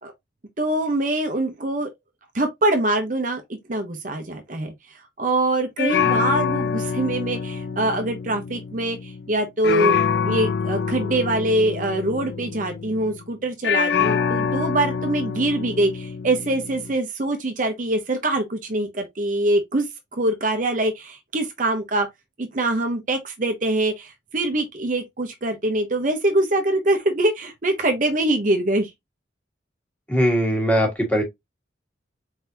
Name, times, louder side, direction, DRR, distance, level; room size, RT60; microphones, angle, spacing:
voice 1, 0.6-1.9 2.3-3.4 3.7-4.7 5.2-9.9 10.2-19.9 20.1-22.1 22.4-28.9, right 1 dB, 45° right, 0.8 m, -23 dB
sound 1, 5.8-9.3 9.6-13.2 13.6-16.9, left 6 dB, 60° left, 0.4 m, -26 dB
voice 2, 30.1-31.2, equal, 10° left, 1.6 m, -20 dB
4.5 x 3.9 x 2.7 m
head